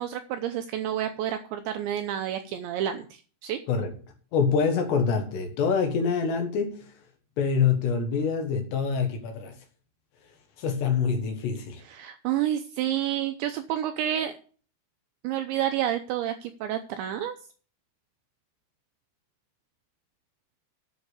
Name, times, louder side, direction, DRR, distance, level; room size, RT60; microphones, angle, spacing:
voice 1, 0.0-3.6 11.8-14.3 15.2-17.4, right 11 dB, 80° right, 2.7 m, -29 dB
voice 2, 4.3-6.9 7.4-9.6 10.6-11.8, left 6 dB, 65° left, 3.3 m, -25 dB
9.7 x 6.5 x 8.1 m
omnidirectional pair, 6.0 m